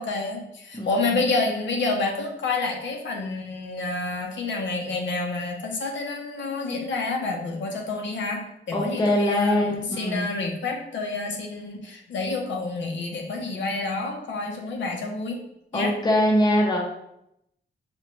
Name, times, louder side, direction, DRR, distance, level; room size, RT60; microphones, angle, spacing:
voice 1, 0.0-15.4 15.7-15.9, left 3 dB, 70° left, 1 dB, 0.6 m, -28 dB
voice 2, 0.7-1.2 8.7-10.3 15.7-16.8, left 1 dB, 20° left, -1 dB, 0.5 m, -23 dB
5.1 x 2.1 x 2.9 m, 0.79 s
wide cardioid pair, 170°, 19 cm